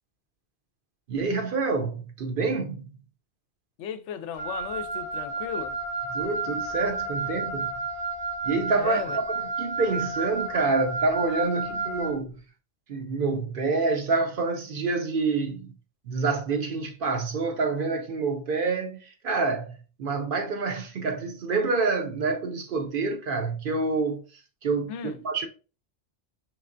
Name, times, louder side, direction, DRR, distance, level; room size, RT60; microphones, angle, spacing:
voice 1, 1.1-2.8 6.1-7.7 8.4-12.4 12.9-15.7 16.1-24.2 24.6-25.5, right 3 dB, 55° right, 0.7 m, -27 dB
voice 2, 3.8-5.8 8.8-9.2 11.7-11.8 24.9-25.2, left 8 dB, 80° left, 0.9 m, -36 dB
Wind instrument woodwind instrument, 4.4-12.1, right 3 dB, 35° left, 1.0 m, -31 dB
4.7 x 3.3 x 2.5 m
omnidirectional pair, 1.2 m